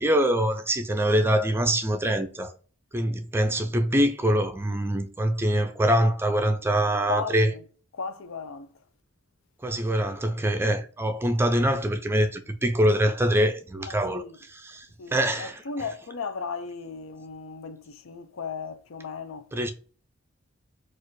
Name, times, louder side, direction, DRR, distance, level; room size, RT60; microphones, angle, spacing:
voice 1, 0.0-2.5 2.9-7.5 9.6-15.6 19.5-19.7, right 1 dB, 10° right, 0.4 m, -24 dB
voice 2, 7.1-7.6 7.9-8.8 13.9-14.4 15.0-19.5, left 4 dB, 75° left, 0.5 m, -36 dB
4.3 x 2.4 x 4.6 m
head